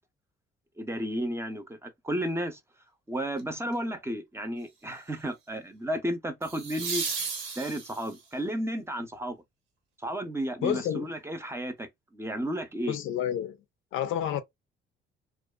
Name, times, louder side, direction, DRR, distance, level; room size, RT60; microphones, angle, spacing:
voice 1, 0.8-2.6 3.1-7.0 7.6-9.4 10.0-11.9 12.1-13.0, equal, 15° right, 0.6 m, -33 dB
sound 1, 3.4-3.7 6.4-8.3 11.2-11.3, right 5 dB, 85° right, 0.9 m, -34 dB
voice 2, 10.6-11.1 12.9-13.6 13.9-14.4, left 10 dB, 85° left, 0.5 m, -29 dB
2.5 x 2.3 x 2.2 m
cardioid pair, 90°, 20 cm